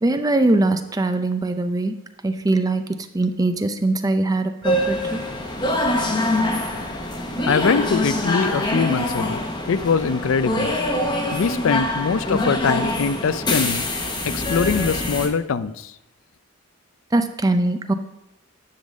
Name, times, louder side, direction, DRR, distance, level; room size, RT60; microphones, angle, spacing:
voice 1, 0.0-1.9 2.2-2.8 3.1-5.2 17.1-17.9, right 2 dB, 15° right, 9 dB, 0.4 m, -21 dB
sound 1, 4.6-15.3, left 1 dB, 20° left, 0.9 m, -24 dB
voice 2, 7.5-9.4 9.7-10.7 11.3-13.8 14.2-15.9, left 5 dB, 75° left, 14 dB, 0.4 m, -22 dB
10.5 x 3.9 x 6.3 m, 0.87 s
head